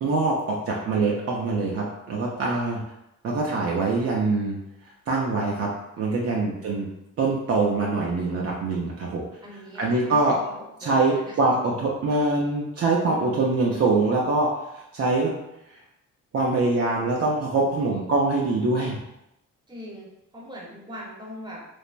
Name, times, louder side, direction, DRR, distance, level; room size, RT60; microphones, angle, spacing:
voice 1, 0.0-2.8 3.2-4.6 5.1-5.7 6.0-6.9 7.2-9.2 9.8-10.4 10.8-15.3 15.7-15.8 16.3-19.0, right 3 dB, 50° right, -2 dB, 0.5 m, -24 dB
voice 2, 9.4-11.4 19.7-21.7, equal, 15° right, -3 dB, 0.9 m, -41 dB
3.2 x 2.0 x 2.5 m, 0.86 s
cardioid pair, 90°, 30 cm